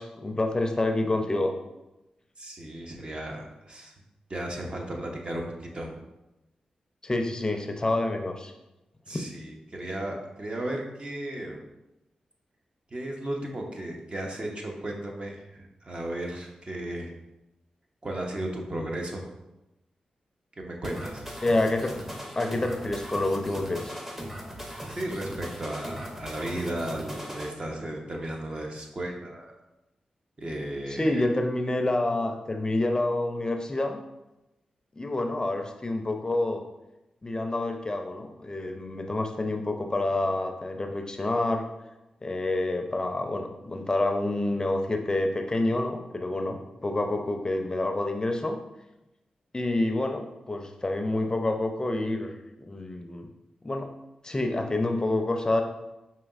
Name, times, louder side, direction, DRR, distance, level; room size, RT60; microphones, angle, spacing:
voice 1, 0.0-1.5 7.0-8.5 9.1-9.2 21.4-22.0 22.4-23.9 30.9-34.0 35.0-36.6 37.2-41.6 42.2-48.6 49.5-52.3 52.6-53.3 53.6-53.9 54.2-55.6, left 2 dB, 30° left, 4 dB, 0.4 m, -28 dB
voice 2, 2.4-3.9 4.3-6.0 9.1-11.6 12.9-17.1 18.0-19.3 20.6-21.3 24.9-29.6 30.4-31.3, right 1 dB, 45° right, 0 dB, 0.8 m, -35 dB
sound 1, 20.8-27.5, equal, 10° right, 0.7 m, -39 dB
5.0 x 2.8 x 2.4 m, 0.97 s
supercardioid pair, 40°, 3 cm